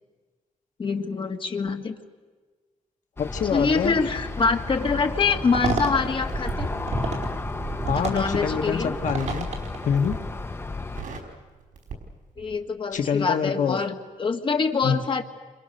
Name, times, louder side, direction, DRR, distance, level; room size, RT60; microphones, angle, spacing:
voice 1, 0.8-2.0 3.5-6.7 7.9-9.0 12.4-15.2, left 4 dB, 40° left, 5 dB, 1.8 m, -25 dB
voice 2, 3.2-4.0 7.9-9.5 9.8-10.2 12.9-13.8 14.8-15.0, left 7 dB, 70° left, 4 dB, 1.5 m, -25 dB
Aircraft, 3.2-11.0, left 3 dB, 20° left, 1.0 m, -33 dB
sound 1, 5.2-10.2, right 3 dB, 60° right, 4.4 m, -30 dB
Crackle, 6.2-7.4 7.9-8.5 9.2-9.6 9.9-10.4 10.7-12.6 12.9-13.1, right 4 dB, 80° right, 5.1 m, -39 dB
30.0 x 27.0 x 6.6 m, 1.4 s
wide cardioid pair, 150°, 13 cm